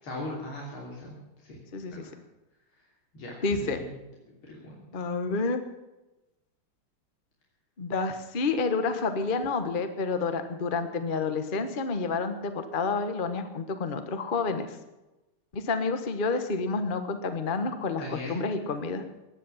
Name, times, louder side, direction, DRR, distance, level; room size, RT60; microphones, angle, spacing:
voice 1, 0.0-1.6 1.9-2.2 2.8-2.9 3.1-4.0 4.4-4.8 17.9-18.4, left 1 dB, 70° left, -3 dB, 4.0 m, -39 dB
voice 2, 1.7-2.0 3.4-3.8 4.9-5.6 7.8-14.8 15.5-19.0, left 4 dB, 30° left, 8 dB, 1.2 m, -29 dB
17.0 x 11.0 x 7.3 m, 1.0 s
omnidirectional pair, 2.4 m